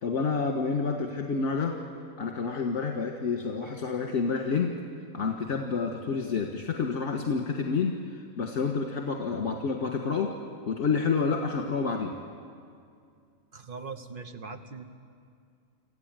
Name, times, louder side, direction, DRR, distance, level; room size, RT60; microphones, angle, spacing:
voice 1, 0.0-1.8 2.2-4.7 5.1-10.3 10.7-12.1, left 5 dB, 55° left, 2 dB, 1.8 m, -29 dB
voice 2, 13.5-14.8, right 4 dB, 40° right, 7 dB, 1.3 m, -41 dB
27.5 x 15.0 x 9.0 m, 2.3 s
omnidirectional pair, 1.4 m